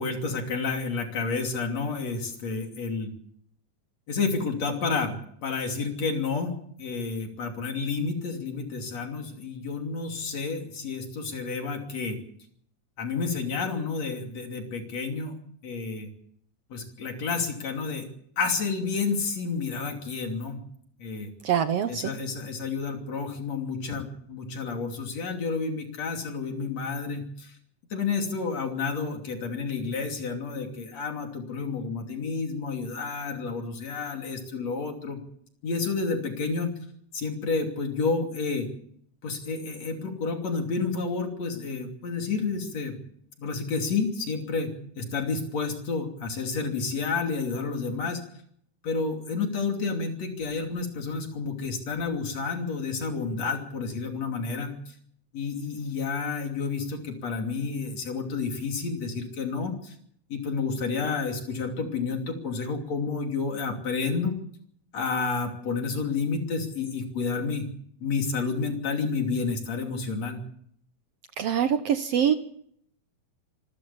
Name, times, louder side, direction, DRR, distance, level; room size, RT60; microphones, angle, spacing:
voice 1, 0.0-3.1 4.1-6.5 6.8-12.2 13.0-15.4 15.6-16.1 16.7-18.1 18.4-20.6 21.0-21.3 21.9-27.5 27.9-35.2 35.6-36.7 37.1-38.7 39.2-42.9 43.4-48.2 48.8-54.7 55.3-59.9 60.3-64.3 64.9-67.7 68.0-70.4, left 4 dB, 60° left, 3 dB, 4.0 m, -30 dB
voice 2, 21.4-22.0 71.4-72.3, right 8 dB, 65° right, 9 dB, 1.7 m, -24 dB
27.0 x 13.5 x 7.1 m, 0.67 s
omnidirectional pair, 3.5 m